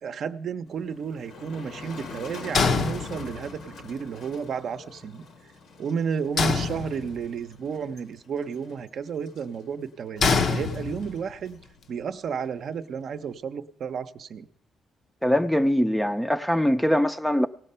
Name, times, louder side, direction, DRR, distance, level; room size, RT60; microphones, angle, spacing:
voice 1, 0.0-5.3 5.8-11.6 11.9-14.5, right 6 dB, 60° right, 0.6 m, -32 dB
Motor vehicle (road), 0.7-13.3, left 3 dB, 75° left, 1.3 m, -46 dB
sound 1, 2.5-3.6 6.4-7.4 10.2-11.3, left 4 dB, 60° left, 0.7 m, -25 dB
voice 2, 15.2-17.5, equal, 5° left, 0.4 m, -22 dB
18.0 x 6.6 x 5.5 m
cardioid pair, 90°, 0 cm